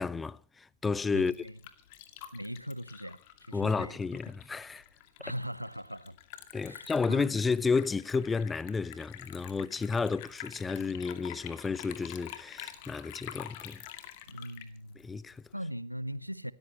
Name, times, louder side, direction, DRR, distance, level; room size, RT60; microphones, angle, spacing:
voice 1, 0.0-1.3 3.5-4.8 6.5-13.8 15.0-15.4, left 4 dB, 15° left, 0.7 m, -31 dB
Liquid, 1.0-15.5, left 12 dB, 50° left, 2.3 m, -48 dB
voice 2, 1.1-1.5 2.3-4.0 5.2-6.2 6.6-7.3 14.3-15.0 15.5-16.5, equal, 90° right, 0.9 m, -40 dB
27.5 x 14.0 x 3.0 m
figure-of-eight pair, 90°, 0 cm